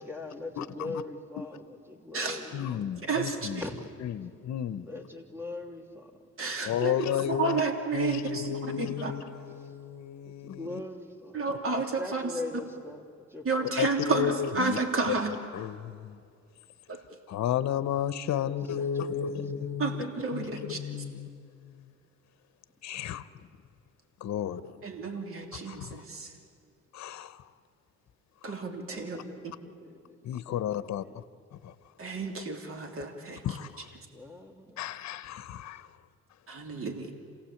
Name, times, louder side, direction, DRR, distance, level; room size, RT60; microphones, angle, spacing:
voice 1, 0.0-2.8 3.6-3.8 4.8-6.2 9.6-9.7 10.2-11.4 12.0-13.7 18.4-19.1 24.3-24.5 28.9-30.2 30.5-31.2 34.1-34.8, left 2 dB, 10° right, 2.7 m, -41 dB
voice 2, 0.6-1.0 2.5-3.6 4.0-4.9 6.6-7.6 7.9-10.8 13.8-14.8 15.1-15.2 15.5-16.2 17.3-20.0 20.3-21.9 22.8-23.5 24.2-24.8 25.7-26.0 26.9-27.5 28.4-28.6 30.2-31.2 31.5-31.7 33.4-34.0 34.8-35.9, left 10 dB, 65° left, 0.9 m, -33 dB
voice 3, 3.1-3.6 6.4-9.1 11.3-12.2 13.4-15.3 16.9-17.0 19.8-21.0 24.8-26.3 28.4-29.2 32.0-33.4 36.5-37.1, right 4 dB, 45° right, 3.1 m, -31 dB
27.5 x 17.0 x 8.6 m
cardioid pair, 90°, 30 cm